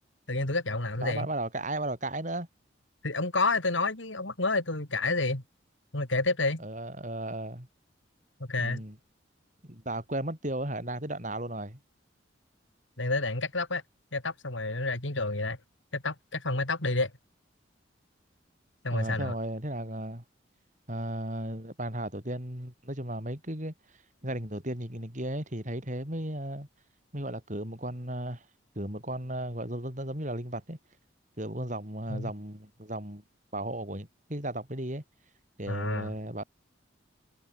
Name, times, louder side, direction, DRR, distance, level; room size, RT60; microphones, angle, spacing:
voice 1, 0.3-1.3 3.0-5.4 5.9-6.6 8.4-8.8 13.0-13.8 14.1-15.6 15.9-17.1 18.8-19.3 32.1-32.3 35.7-36.1, left 3 dB, 80° left, 4.0 m, -29 dB
voice 2, 1.0-2.5 6.6-7.7 8.6-9.0 9.6-11.8 18.9-20.2 20.9-23.7 24.2-26.7 27.1-28.4 28.8-30.8 31.4-33.2 33.5-35.0 35.6-36.4, right 1 dB, 40° right, 5.5 m, -35 dB
head